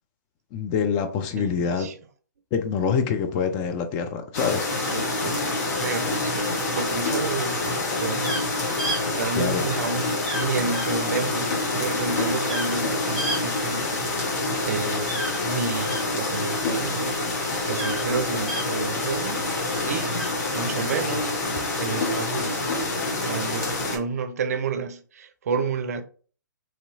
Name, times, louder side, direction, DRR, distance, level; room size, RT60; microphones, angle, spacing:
voice 1, 0.5-1.9 2.5-4.7 9.3-9.6, left 6 dB, 25° left, 0.4 m, -25 dB
voice 2, 1.4-1.9 4.8-5.4 5.7-8.4 9.1-15.1 15.4-20.2 20.5-21.3 21.8-22.8 23.2-26.0, right 5 dB, 50° right, 0.5 m, -31 dB
sound 1, 4.3-24.0, left 2 dB, 55° left, 1.2 m, -27 dB
sound 2, 6.4-6.9 8.2-8.4 8.8-9.0 10.2-10.5 10.7-10.9 12.4-12.8 13.2-13.4 15.1-16.0 17.7-18.0 18.5-18.6 20.1-20.3, right 1 dB, 5° left, 1.1 m, -31 dB
3.1 x 2.7 x 2.7 m
figure-of-eight pair, 130°, 11 cm